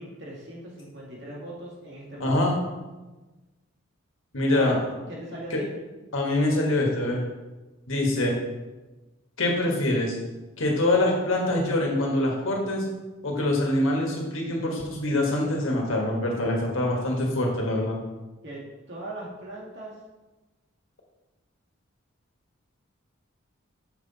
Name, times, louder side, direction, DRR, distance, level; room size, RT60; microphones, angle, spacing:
voice 1, 0.0-2.4 4.5-4.8 5.1-5.7 18.4-20.0, right 1 dB, 55° right, -4 dB, 2.3 m, -39 dB
voice 2, 2.2-2.5 4.3-4.8 5.5-5.6 6.1-7.2 7.9-8.4 9.4-10.2 10.6-12.8 13.2-18.0, left 1 dB, 70° left, -1 dB, 1.7 m, -24 dB
6.9 x 5.8 x 4.1 m, 1.2 s
head